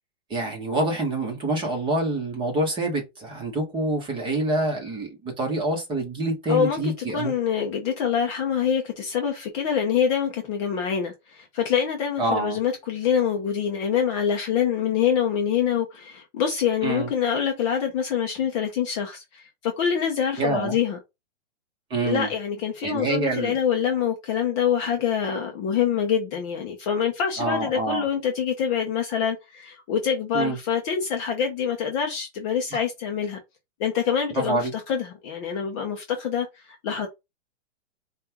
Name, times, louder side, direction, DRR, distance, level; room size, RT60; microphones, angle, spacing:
voice 1, 0.3-7.3 12.2-12.6 16.8-17.1 20.4-20.7 21.9-22.3 22.8-23.6 27.4-28.0 30.3-30.6 32.7-32.8 34.3-34.7, right 2 dB, 15° right, 1.0 m, -26 dB
voice 2, 6.5-21.0 22.0-33.4 33.8-37.1, left 8 dB, 25° left, 0.6 m, -25 dB
5.2 x 2.4 x 2.9 m
hypercardioid pair, 150°, 37 cm